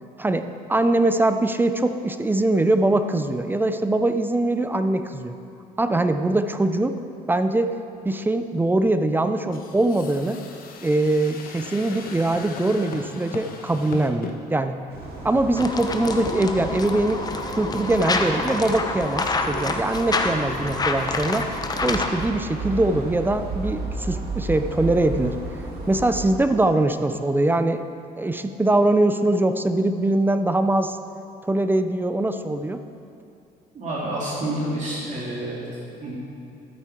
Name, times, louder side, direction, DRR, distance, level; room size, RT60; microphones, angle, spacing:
voice 1, 0.2-5.3 5.8-7.0 7.3-7.7 8.0-10.4 10.8-14.8 15.2-17.2 17.5-21.5 21.8-25.4 25.9-27.8 28.2-31.0 31.4-32.8, right 2 dB, 10° right, 9 dB, 0.5 m, -22 dB
sound 1, 9.5-14.4, left 5 dB, 60° left, 1.1 m, -38 dB
sound 2, 14.9-26.3, right 2 dB, 65° right, 2.3 m, -34 dB
sound 3, 15.6-22.3, left 3 dB, 25° left, 0.8 m, -27 dB
voice 2, 33.7-35.6 36.0-36.2, right 1 dB, 45° right, -7 dB, 2.6 m, -28 dB
13.0 x 8.2 x 4.4 m, 2.7 s
cardioid pair, 110°, 17 cm